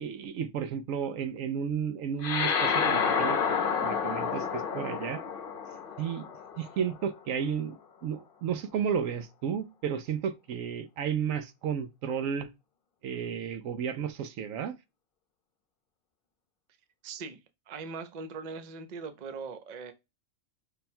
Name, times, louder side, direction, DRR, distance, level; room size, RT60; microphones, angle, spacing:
voice 1, 0.0-5.2 6.0-6.3 6.6-12.5 13.0-14.8, right 7 dB, 80° right, 1.0 m, -33 dB
sound 1, 2.2-7.0, left 6 dB, 50° left, 0.8 m, -29 dB
voice 2, 17.0-17.4 17.7-19.9, right 4 dB, 45° right, 0.6 m, -40 dB
5.4 x 2.2 x 4.2 m
omnidirectional pair, 1.3 m